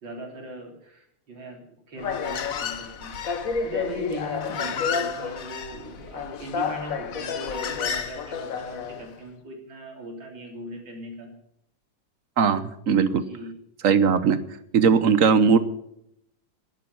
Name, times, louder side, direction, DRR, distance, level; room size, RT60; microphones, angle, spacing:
voice 1, 0.0-3.2 3.6-11.3 13.2-13.6, right 1 dB, 80° right, 1 dB, 4.0 m, -39 dB
Human voice, 2.0-9.1, left 6 dB, 55° left, 1.2 m, -30 dB
voice 2, 12.4-13.2 13.8-14.4 14.7-15.6, right 6 dB, 55° right, 13 dB, 1.1 m, -19 dB
11.0 x 9.1 x 9.5 m, 0.78 s
omnidirectional pair, 2.0 m